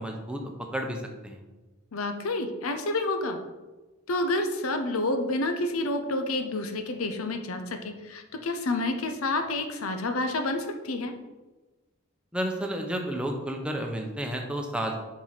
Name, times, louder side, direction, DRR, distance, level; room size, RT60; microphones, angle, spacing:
voice 1, 0.0-1.4 12.3-14.9, right 1 dB, 5° right, 2 dB, 0.7 m, -31 dB
voice 2, 1.9-3.4 4.1-11.1, left 2 dB, 85° left, 6 dB, 0.7 m, -29 dB
6.1 x 4.5 x 4.1 m, 1.2 s
head